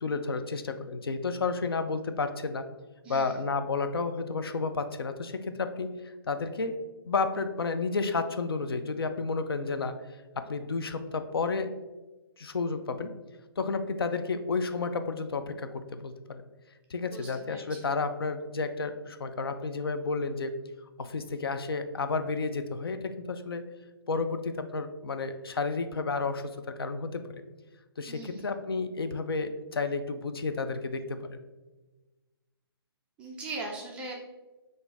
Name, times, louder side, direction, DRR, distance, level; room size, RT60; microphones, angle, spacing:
voice 1, 0.0-2.7 3.1-5.9 6.3-6.8 7.0-10.0 10.4-11.7 12.4-13.1 13.6-16.4 16.9-20.5 21.0-23.6 24.1-27.4 28.0-31.4, left 4 dB, 70° left, 9 dB, 0.5 m, -31 dB
voice 2, 3.0-3.5 17.0-17.9 28.1-28.5 33.2-34.1, right 2 dB, 10° right, -2 dB, 0.3 m, -40 dB
5.8 x 2.6 x 3.3 m, 1.2 s
figure-of-eight pair, 135°, 13 cm